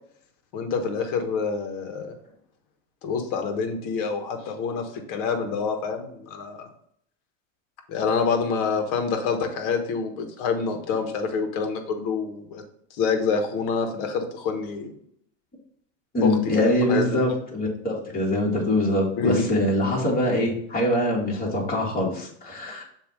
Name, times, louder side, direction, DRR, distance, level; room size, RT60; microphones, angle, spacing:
voice 1, 0.5-2.1 3.0-6.7 7.9-12.6 12.9-14.9 16.2-17.1 19.2-19.4, left 5 dB, 60° left, 5 dB, 1.4 m, -27 dB
voice 2, 16.1-22.8, left 1 dB, 25° left, -2 dB, 2.2 m, -24 dB
7.0 x 2.8 x 5.3 m, 0.70 s
supercardioid pair, 110°, 36 cm